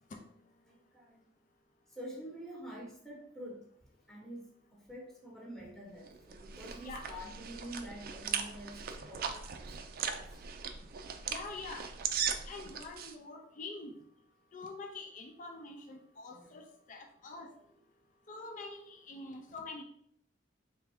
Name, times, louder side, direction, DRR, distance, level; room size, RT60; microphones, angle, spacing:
voice 1, 0.6-1.2 1.9-3.7 4.1-10.4 16.3-16.6 17.4-17.5, equal, ahead, -3 dB, 0.9 m, -48 dB
sound 1, 6.0-13.1, right 7 dB, 50° right, 0.4 m, -39 dB
voice 2, 6.8-7.1 11.3-11.9 12.5-14.0 14.5-17.5 18.3-19.8, left 3 dB, 45° left, 3 dB, 0.5 m, -45 dB
3.6 x 3.4 x 3.4 m, 0.70 s
head